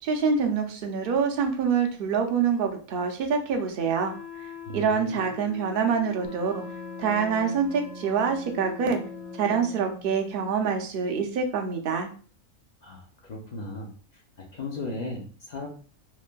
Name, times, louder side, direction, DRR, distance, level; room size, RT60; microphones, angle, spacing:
voice 1, 0.0-4.1 4.7-6.6 7.0-9.0 9.4-12.1, right 6 dB, 60° right, 4 dB, 0.6 m, -26 dB
Wind instrument woodwind instrument, 3.9-9.8, left 8 dB, 80° left, 1.0 m, -42 dB
voice 2, 4.7-5.3 12.8-13.9 14.5-15.7, left 2 dB, 55° left, -1 dB, 0.4 m, -36 dB
Wind instrument woodwind instrument 2, 6.2-10.7, equal, 75° right, 1.0 m, -43 dB
3.2 x 2.5 x 2.2 m, 0.40 s
omnidirectional pair, 1.4 m